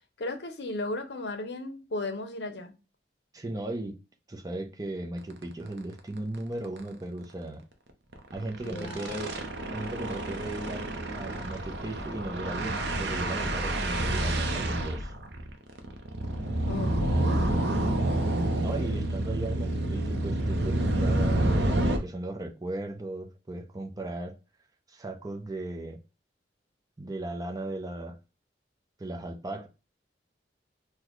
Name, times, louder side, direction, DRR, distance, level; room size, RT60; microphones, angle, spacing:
voice 1, 0.2-2.7 8.6-9.2 16.7-17.4, left 2 dB, 70° left, 0.7 m, -35 dB
voice 2, 3.3-4.0 4.3-7.6 8.3-9.3 9.7-10.8 11.1-15.1 18.6-24.3 24.9-26.0 27.0-28.2 29.0-29.7, right 2 dB, 20° right, 0.6 m, -36 dB
sound 1, 5.3-5.4 5.8-5.9 6.2-6.4 6.6-6.8 8.1-22.0, right 1 dB, 70° right, 0.6 m, -28 dB
4.0 x 2.2 x 3.0 m
head